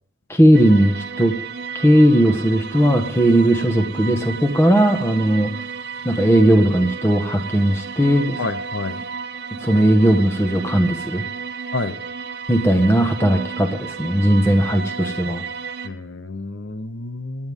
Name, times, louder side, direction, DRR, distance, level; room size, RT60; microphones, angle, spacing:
voice 1, 0.3-1.3 1.7-5.5 6.0-8.4 9.6-11.2 12.5-15.4, right 1 dB, 15° left, 5 dB, 1.3 m, -17 dB
sound 1, 0.5-15.9, right 5 dB, 55° right, 0.8 m, -33 dB
voice 2, 8.4-9.0 11.7-12.0 15.8-17.5, left 3 dB, 85° left, 12 dB, 0.9 m, -29 dB
24.5 x 9.6 x 3.7 m, 0.64 s
head